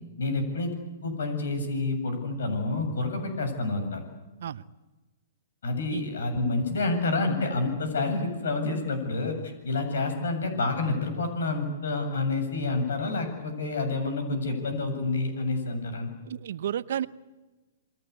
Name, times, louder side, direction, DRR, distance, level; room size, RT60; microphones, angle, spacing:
voice 1, 0.2-0.7 1.0-4.0 5.6-9.4 9.6-16.1, left 3 dB, 75° left, 7 dB, 7.8 m, -28 dB
voice 2, 16.2-17.1, right 10 dB, 65° right, 15 dB, 1.0 m, -32 dB
28.5 x 21.5 x 8.4 m, 1.2 s
hypercardioid pair, 120°, 0 cm